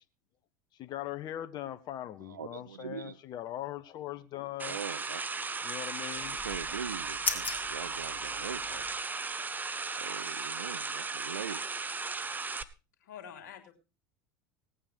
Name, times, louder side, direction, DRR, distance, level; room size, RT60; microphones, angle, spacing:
voice 1, 0.8-4.8 5.6-6.4, left 13 dB, 45° left, 1.2 m, -40 dB
voice 2, 2.3-3.2 4.7-5.5 6.4-8.9 10.0-11.7, right 7 dB, 85° right, 0.6 m, -42 dB
sound 1, 4.6-12.6, right 4 dB, 20° right, 1.0 m, -36 dB
sound 2, 6.1-8.9, left 4 dB, 15° left, 3.1 m, -39 dB
voice 3, 13.0-13.7, left 8 dB, 70° left, 2.9 m, -46 dB
18.0 x 8.9 x 4.5 m
hypercardioid pair, 75°, 10 cm